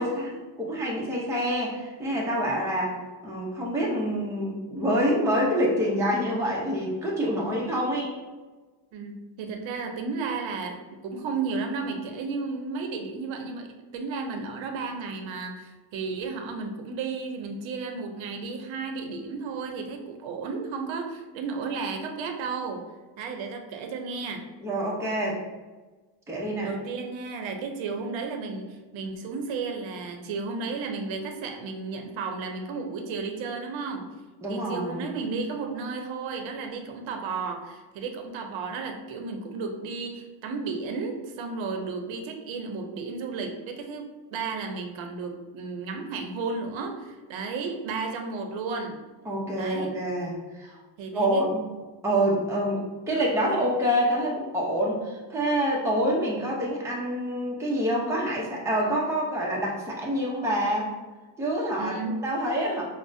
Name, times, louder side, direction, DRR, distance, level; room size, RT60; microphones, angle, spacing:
voice 1, 0.0-3.0 3.2-8.1 24.6-25.4 26.3-26.7 34.4-35.0 49.3-50.8 51.1-51.6 52.0-52.8 53.1-60.9 61.4-62.8, equal, 5° right, -4 dB, 0.6 m, -26 dB
voice 2, 8.9-22.8 23.2-24.4 26.6-34.0 34.5-49.0 49.6-49.9 51.0-51.4 61.8-62.1, right 4 dB, 75° right, 4 dB, 0.7 m, -33 dB
4.8 x 2.1 x 2.5 m, 1.3 s
cardioid pair, 125°, 46 cm